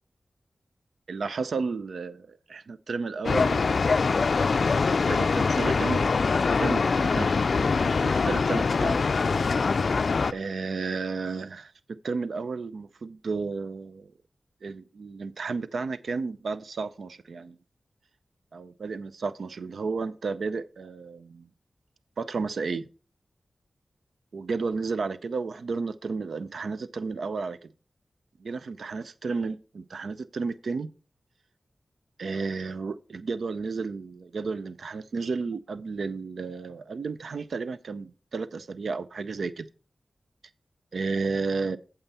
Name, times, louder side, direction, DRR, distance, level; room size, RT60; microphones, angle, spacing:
voice 1, 1.1-4.2 5.0-6.1 6.6-9.0 10.3-14.1 14.6-17.6 18.5-21.5 22.2-22.9 24.3-27.7 28.4-30.9 32.2-39.7 40.9-41.8, right 4 dB, 80° right, 0.5 m, -32 dB
sound 1, 3.2-10.3, left 4 dB, 65° left, 0.3 m, -23 dB
9.0 x 6.9 x 4.1 m
wide cardioid pair, 125°, 0 cm